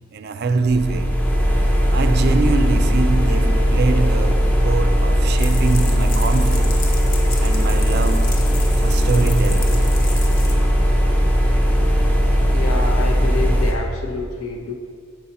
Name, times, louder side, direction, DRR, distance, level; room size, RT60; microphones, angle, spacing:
voice 1, 0.1-1.2 1.9-6.9 7.4-9.8, right 3 dB, 50° right, 0.4 m, -23 dB
sound 1, 0.7-13.7, equal, 10° left, 0.6 m, -17 dB
sound 2, 5.4-10.5, left 4 dB, 40° left, 0.7 m, -34 dB
voice 2, 12.4-14.7, left 3 dB, 80° left, 0.9 m, -28 dB
7.1 x 5.6 x 4.1 m
head